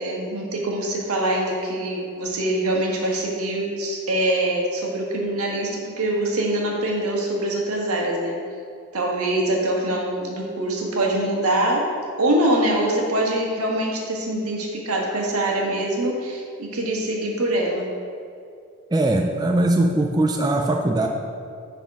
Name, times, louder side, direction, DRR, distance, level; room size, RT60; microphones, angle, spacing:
voice 1, 0.0-8.4 8.9-11.8 12.2-17.8, right 1 dB, 85° right, -1 dB, 1.4 m, -24 dB
voice 2, 18.9-21.1, right 2 dB, 20° right, 2 dB, 0.4 m, -20 dB
10.5 x 4.1 x 4.8 m, 2.4 s
head